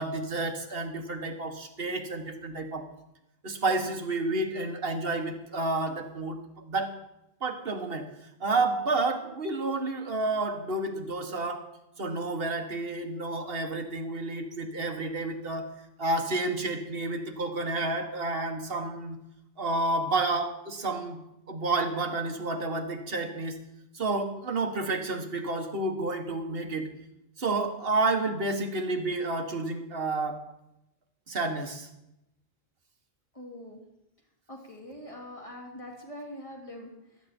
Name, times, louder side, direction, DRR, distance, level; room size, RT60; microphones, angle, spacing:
voice 1, 0.0-2.9 3.4-6.4 6.7-6.9 7.4-8.1 8.4-11.7 12.0-19.2 19.6-21.2 21.5-23.6 23.9-26.9 27.4-30.4 31.3-31.9, right 2 dB, 65° right, 5 dB, 1.8 m, -30 dB
voice 2, 33.3-33.8 34.5-36.9, left 1 dB, 30° left, -1 dB, 3.0 m, -43 dB
16.0 x 13.0 x 4.4 m, 0.87 s
omnidirectional pair, 1.0 m